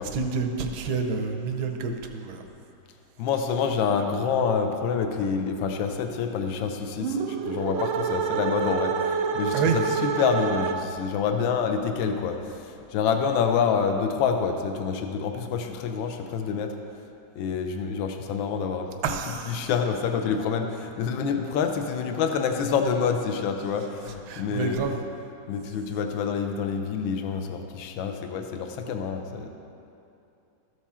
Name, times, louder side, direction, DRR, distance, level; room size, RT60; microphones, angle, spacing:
voice 1, 0.1-2.4 9.5-9.8 19.0-19.6 24.1-25.0, right 5 dB, 70° right, 4 dB, 1.0 m, -28 dB
voice 2, 3.2-16.8 17.4-18.9 19.5-24.8 25.5-29.5, left 6 dB, 75° left, 5 dB, 1.4 m, -27 dB
sound 1, 6.9-11.1, right 6 dB, 90° right, 1.5 m, -28 dB
13.5 x 4.8 x 4.2 m, 2.7 s
omnidirectional pair, 2.3 m